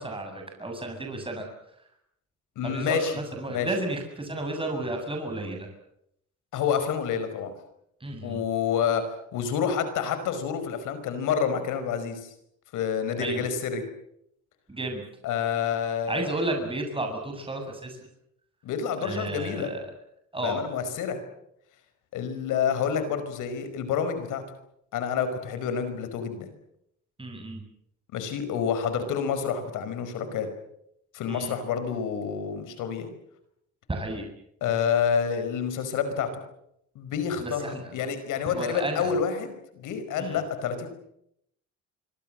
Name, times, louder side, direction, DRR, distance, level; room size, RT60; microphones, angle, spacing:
voice 1, 0.0-1.5 2.6-5.7 8.0-8.4 13.2-13.4 14.7-15.0 16.1-18.1 19.0-19.9 20.3-20.7 27.2-27.6 31.3-31.5 33.9-34.3 37.4-37.9 38.5-39.1 40.2-40.4, right 2 dB, 15° right, 3 dB, 7.6 m, -32 dB
voice 2, 2.6-3.1 3.5-3.7 6.5-7.5 8.2-9.0 9.3-12.3 12.7-13.8 15.2-16.3 18.6-19.7 20.4-21.2 22.1-24.4 24.9-26.5 28.1-30.5 31.1-33.1 34.6-36.3 37.0-40.9, left 7 dB, 90° left, 10 dB, 5.3 m, -28 dB
26.0 x 23.5 x 7.7 m, 0.77 s
cardioid pair, 90°, 30 cm